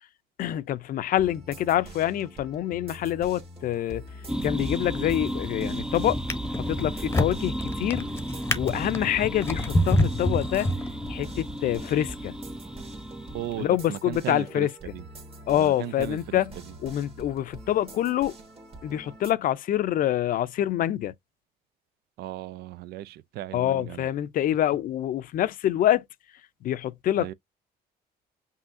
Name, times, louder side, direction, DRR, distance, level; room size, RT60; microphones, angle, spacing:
voice 1, 0.4-4.0 4.4-6.2 6.7-8.0 8.5-10.7 11.1-12.3 13.6-14.7 15.5-16.5 16.8-18.3 18.8-21.1 23.5-26.0 26.6-27.3, left 12 dB, 55° left, 0.5 m, -26 dB
sound 1, 1.2-19.3, right 1 dB, 35° right, 1.7 m, -45 dB
sound 2, 4.3-13.7, equal, 5° right, 0.3 m, -34 dB
Drawer open or close, 5.1-5.5 6.1-11.3 12.0-12.1, left 1 dB, 15° left, 0.8 m, -28 dB
voice 2, 13.3-15.0 15.5-16.4 22.2-24.1 27.2-27.3, right 13 dB, 70° right, 0.4 m, -36 dB
5.5 x 2.7 x 2.6 m
cardioid pair, 110°, 17 cm